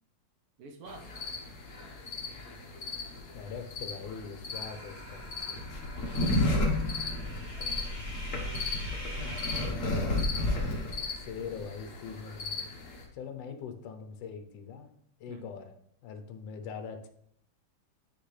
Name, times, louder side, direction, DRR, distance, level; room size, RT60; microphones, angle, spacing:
voice 1, 0.6-1.1 6.4-8.0 9.1-9.6 15.3-15.5, right 3 dB, 65° right, 4 dB, 1.1 m, -51 dB
sound 1, 0.9-13.0, left 2 dB, 50° left, 1.2 m, -33 dB
voice 2, 3.3-5.6 9.2-10.1 11.2-14.9 15.2-15.7 16.0-17.1, left 6 dB, 75° left, 6 dB, 1.4 m, -42 dB
sound 2, 4.5-9.7, equal, 20° left, 1.6 m, -45 dB
9.8 x 3.4 x 3.2 m, 0.69 s
omnidirectional pair, 2.1 m